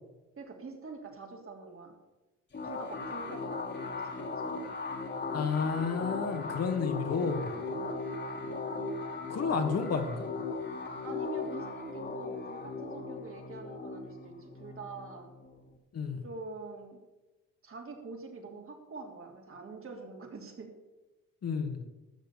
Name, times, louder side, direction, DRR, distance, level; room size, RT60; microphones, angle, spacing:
voice 1, 0.4-1.9 2.6-4.5 7.5-8.0 11.0-15.3 16.2-17.0 17.6-20.7, right 4 dB, 45° right, 2 dB, 3.1 m, -45 dB
sound 1, 2.5-15.8, left 3 dB, 35° left, 2.3 m, -38 dB
voice 2, 5.3-7.5 9.3-10.3 15.9-16.2 21.4-21.8, left 5 dB, 55° left, 4 dB, 2.0 m, -31 dB
13.5 x 6.7 x 7.0 m, 1.1 s
cardioid pair, 90°, 30 cm